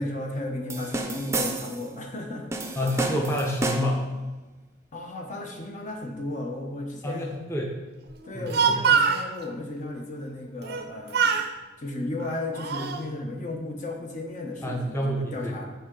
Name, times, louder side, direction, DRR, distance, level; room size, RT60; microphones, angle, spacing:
voice 1, 0.0-2.4 4.9-7.3 8.2-11.4 11.8-15.6, left 2 dB, 40° left, 1 dB, 0.9 m, -34 dB
sound 1, 0.7-1.9 2.5-4.1, right 2 dB, 15° right, 0.6 m, -30 dB
voice 2, 2.8-4.1 7.0-7.7 8.3-8.8 14.6-15.6, equal, 15° left, -1 dB, 0.8 m, -28 dB
Speech, 8.3-9.3 10.6-10.9 11.1-11.5 12.2-13.0, right 6 dB, 55° right, 0.5 m, -24 dB
9.5 x 4.6 x 3.8 m, 1.2 s
head